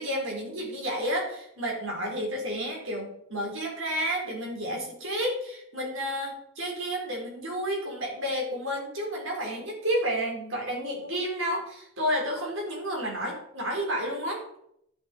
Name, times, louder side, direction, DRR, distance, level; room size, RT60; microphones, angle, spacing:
voice 1, 0.0-14.4, equal, 70° right, -1 dB, 4.4 m, -31 dB
11.0 x 8.9 x 4.5 m, 0.72 s
head